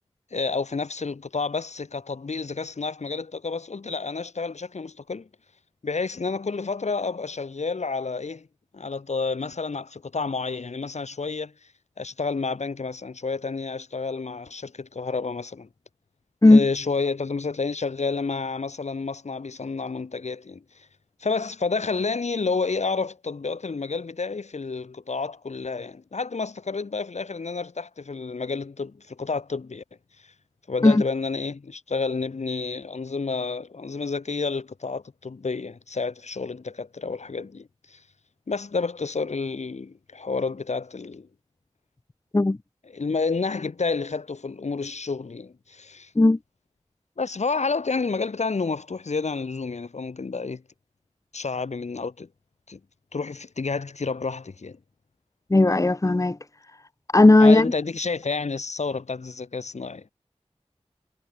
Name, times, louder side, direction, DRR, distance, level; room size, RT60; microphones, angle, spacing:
voice 1, 0.3-5.3 5.8-8.5 8.7-11.5 12.0-15.7 16.5-20.6 21.2-29.8 30.7-38.0 38.5-41.3 42.9-46.1 47.2-50.6 51.3-52.3 52.7-52.8 53.1-54.8 57.4-60.1, left 4 dB, 80° left, 2.2 m, -30 dB
voice 2, 55.5-56.4 57.1-57.7, left 2 dB, 30° left, 1.1 m, -15 dB
wide cardioid pair, 70°, 11 cm